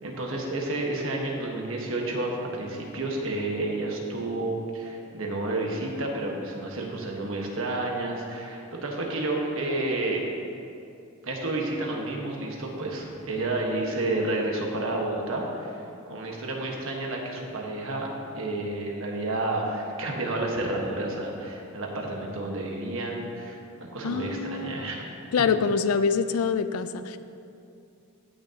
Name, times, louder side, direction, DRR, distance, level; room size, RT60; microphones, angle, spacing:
voice 1, 0.0-10.2 11.2-15.8 16.1-25.0, right 2 dB, 65° right, 0 dB, 1.3 m, -30 dB
voice 2, 24.0-24.9 25.3-27.2, left 5 dB, 85° left, 12 dB, 0.4 m, -25 dB
15.5 x 6.4 x 2.8 m, 2.6 s
head